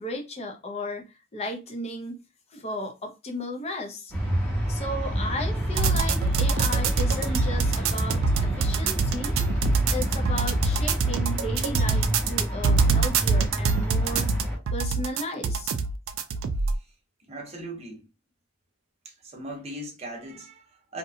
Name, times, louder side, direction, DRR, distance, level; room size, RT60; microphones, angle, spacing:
voice 1, 0.0-2.2 2.5-4.1 4.7-9.4 9.9-14.3 14.7-15.7, left 1 dB, 30° left, 0.5 m, -34 dB
sound 1, 4.1-14.6, equal, 10° left, 0.9 m, -28 dB
sound 2, 5.8-16.8, right 4 dB, 70° right, 0.4 m, -25 dB
voice 2, 17.3-18.1 19.0-21.0, right 1 dB, 30° right, 0.8 m, -39 dB
2.8 x 2.2 x 2.6 m
head